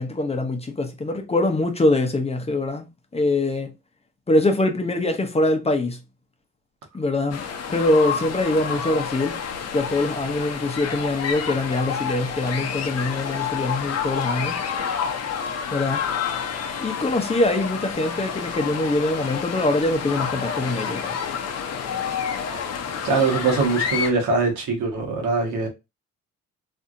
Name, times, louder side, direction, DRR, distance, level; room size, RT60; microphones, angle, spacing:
voice 1, 0.0-3.7 4.3-6.0 6.9-7.4 7.7-9.4 9.7-14.6 15.7-16.0 16.8-21.2, left 2 dB, 20° left, 0.7 m, -23 dB
sound 1, 7.3-24.1, left 7 dB, 55° left, 0.7 m, -29 dB
voice 2, 23.0-25.7, right 4 dB, 80° right, 1.5 m, -22 dB
3.3 x 2.8 x 2.5 m
cardioid pair, 90°, 30 cm